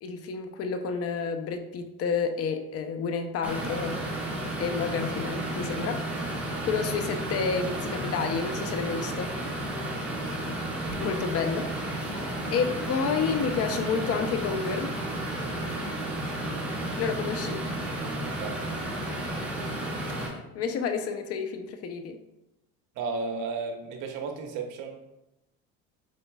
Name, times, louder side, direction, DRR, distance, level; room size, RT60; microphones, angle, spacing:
voice 1, 0.0-4.0 4.6-9.3 11.0-12.1 12.5-15.0 17.0-17.6 20.2-22.2, left 5 dB, 45° left, 7 dB, 0.7 m, -30 dB
sound 1, 3.4-20.3, right 1 dB, 5° right, 1.9 m, -32 dB
voice 2, 9.8-10.5 15.9-16.2 18.4-18.7 19.1-19.3 22.9-25.0, right 4 dB, 60° right, 3 dB, 1.2 m, -35 dB
8.1 x 5.0 x 2.3 m, 0.92 s
supercardioid pair, 115°, 34 cm